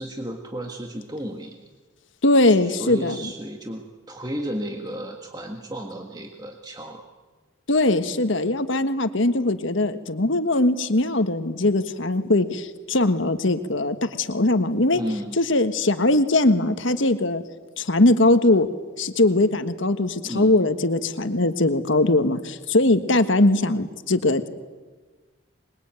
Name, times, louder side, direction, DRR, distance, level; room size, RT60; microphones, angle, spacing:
voice 1, 0.0-1.5 2.4-7.0 14.9-15.3 20.2-20.5, equal, 20° right, 2 dB, 1.7 m, -33 dB
voice 2, 2.2-3.3 7.7-15.0 15.4-17.4 17.8-18.7 19.0-24.5, left 2 dB, 70° left, 10 dB, 1.5 m, -21 dB
26.0 x 22.0 x 9.0 m, 1.3 s
head